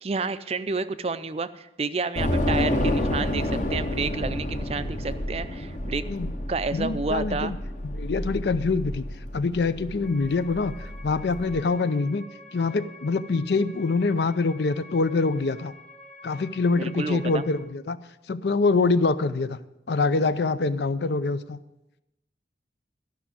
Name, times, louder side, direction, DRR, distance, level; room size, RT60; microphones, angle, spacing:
voice 1, 0.0-6.1 6.5-7.5 16.7-17.4, right 4 dB, 35° right, 13 dB, 0.4 m, -30 dB
Train / Subway metro underground, 2.1-11.6, left 1 dB, 40° left, 0.9 m, -29 dB
voice 2, 6.7-7.6 7.8-9.1 9.3-12.2 12.5-15.7 16.2-18.0 18.3-19.6 19.9-21.6, left 3 dB, 65° left, 14 dB, 0.5 m, -25 dB
sound 1, 10.0-17.6, left 2 dB, 5° left, 0.8 m, -48 dB
12.5 x 6.0 x 8.4 m, 0.92 s
head